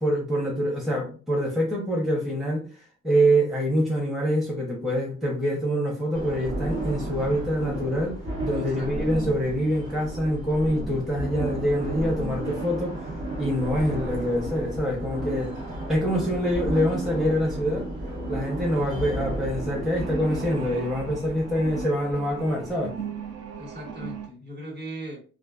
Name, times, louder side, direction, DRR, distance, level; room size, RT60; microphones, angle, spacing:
voice 1, 0.0-2.6 3.0-15.5 15.9-17.9 18.3-22.9, equal, ahead, 0.7 m, -25 dB
sound 1, 6.1-21.9, right 1 dB, 90° right, 1.2 m, -33 dB
voice 2, 8.6-9.1 23.6-25.2, equal, 35° right, 1.1 m, -39 dB
sound 2, 18.7-24.3, right 6 dB, 55° right, 0.6 m, -39 dB
2.5 x 2.3 x 2.3 m
cardioid pair, 90°, 30 cm